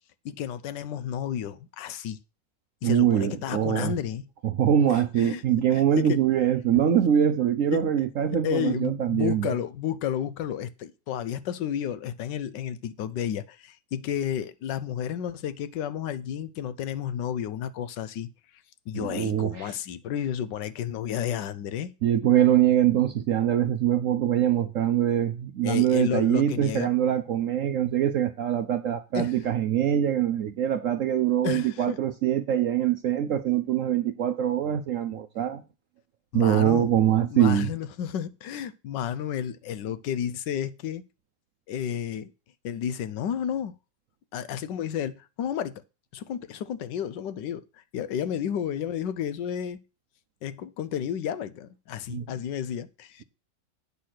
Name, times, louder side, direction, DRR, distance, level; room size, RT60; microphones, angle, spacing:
voice 1, 0.2-2.2 2.8-4.3 5.2-5.4 5.7-6.2 7.7-7.8 8.4-18.3 18.9-21.9 25.6-26.9 29.1-29.4 31.4-32.0 36.3-36.9 37.3-41.0 41.7-42.3 42.6-43.7 44.3-45.8 46.1-47.6 47.9-49.8 50.4-53.2, left 9 dB, 80° left, 1.4 m, -31 dB
voice 2, 2.8-3.9 4.4-9.5 18.9-19.7 22.0-35.6 36.3-37.7 52.1-52.3, right 10 dB, 65° right, 0.8 m, -23 dB
8.6 x 6.5 x 5.9 m
omnidirectional pair, 1.9 m